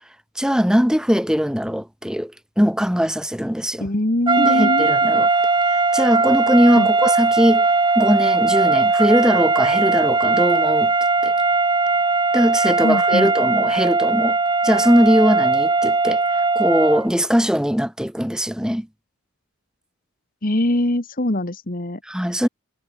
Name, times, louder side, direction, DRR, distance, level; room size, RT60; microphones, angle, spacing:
voice 1, 0.3-3.9 4.4-5.3 5.7-7.7 7.9-10.9 11.2-11.3 12.3-14.4 14.6-16.2 16.5-18.9 22.0-22.5, equal, 5° right, 3.1 m, -20 dB
voice 2, 3.8-4.9 6.8-6.9 12.8-13.3 20.4-22.0, left 1 dB, 40° left, 1.9 m, -22 dB
sound 1, 4.3-17.1, right 3 dB, 20° right, 3.0 m, -19 dB
head